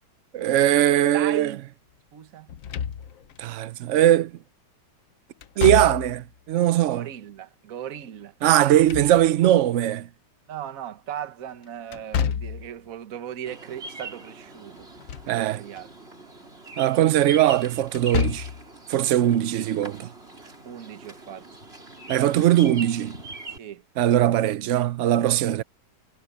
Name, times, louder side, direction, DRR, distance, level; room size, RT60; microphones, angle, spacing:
voice 1, 0.3-1.5 3.4-4.3 5.6-7.1 8.4-10.1 15.3-15.6 16.8-18.5 18.9-20.1 22.1-23.2 24.0-25.6, right 12 dB, 70° right, 0.7 m, -20 dB
voice 2, 1.1-1.6 2.1-2.5 6.9-8.3 10.5-14.9 15.3-15.9 20.6-21.5 23.6-23.8, right 10 dB, 55° right, 1.5 m, -37 dB
Slam / Thump thud, 2.5-3.4 5.4-6.3 8.5-9.6 11.9-12.7 14.8-15.4 15.8-15.9 17.9-18.7, left 8 dB, 55° left, 1.1 m, -29 dB
Bird vocalization bird call bird song, 13.5-23.6, right 3 dB, 35° right, 5.1 m, -42 dB
omnidirectional pair, 1.9 m